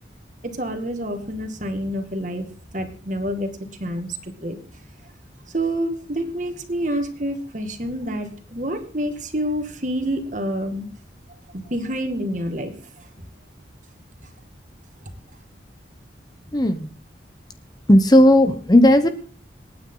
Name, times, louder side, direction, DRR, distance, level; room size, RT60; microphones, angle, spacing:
voice 1, 0.4-2.5 2.7-3.5 3.8-4.6 5.5-10.9 11.5-12.7 13.0-13.1, equal, 40° right, 6 dB, 2.1 m, -27 dB
voice 2, 16.5-16.9 17.9-19.1, left 1 dB, 20° left, 9 dB, 0.9 m, -14 dB
27.5 x 9.5 x 4.0 m, 0.40 s
head